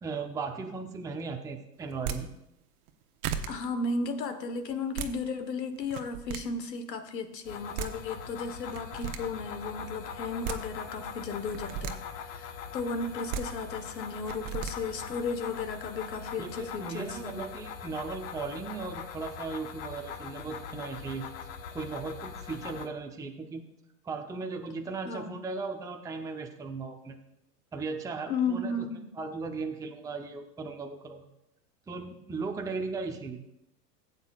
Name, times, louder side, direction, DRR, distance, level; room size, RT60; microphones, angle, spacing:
voice 1, 0.0-2.3 16.4-21.3 21.7-23.6 24.0-27.2 27.7-28.9 29.2-31.3 31.9-33.4, right 4 dB, 5° right, 3 dB, 0.7 m, -37 dB
sound 1, 1.9-2.2 2.9-3.0 3.2-3.5 4.7-5.1 5.8-6.4 7.5-7.6 7.8-7.9 8.7-9.2 10.2-10.6 11.5-11.9 13.1-13.4 14.3-14.7, right 8 dB, 60° right, 1.1 m, -34 dB
voice 2, 3.5-17.5 25.0-25.4 28.3-29.1, left 3 dB, 85° left, 8 dB, 1.4 m, -34 dB
sound 2, 7.4-22.9, left 7 dB, 45° left, 1.2 m, -41 dB
16.5 x 8.1 x 2.4 m, 0.85 s
hypercardioid pair, 110°, 49 cm